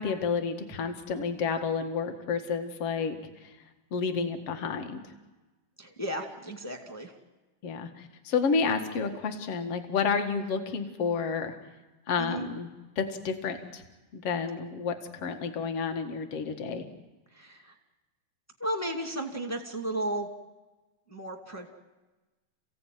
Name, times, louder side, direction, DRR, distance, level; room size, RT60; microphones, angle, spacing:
voice 1, 0.0-3.2 3.9-5.0 7.6-11.5 12.1-12.7 13.0-13.8 14.1-16.8, left 5 dB, 45° left, 6 dB, 2.3 m, -30 dB
voice 2, 5.8-7.1 12.2-12.5 17.3-17.7 18.6-20.3 21.1-21.7, right 1 dB, 10° left, 2 dB, 1.1 m, -34 dB
29.5 x 16.5 x 9.4 m, 1.2 s
omnidirectional pair, 4.5 m